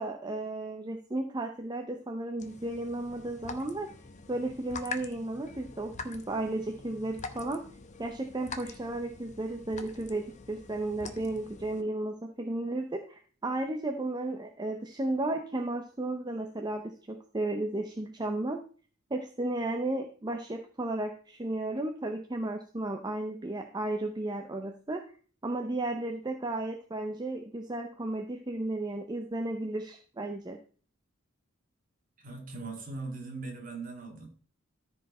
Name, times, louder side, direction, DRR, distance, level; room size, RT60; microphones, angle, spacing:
voice 1, 0.0-3.9 4.3-7.6 8.0-18.6 19.1-25.0 25.4-30.6, right 2 dB, 20° right, 4 dB, 0.7 m, -34 dB
sound 1, 2.4-11.8, left 4 dB, 35° left, 0.8 m, -45 dB
voice 2, 32.2-34.3, right 3 dB, 40° right, 2 dB, 2.2 m, -40 dB
13.5 x 4.7 x 4.2 m, 0.42 s
head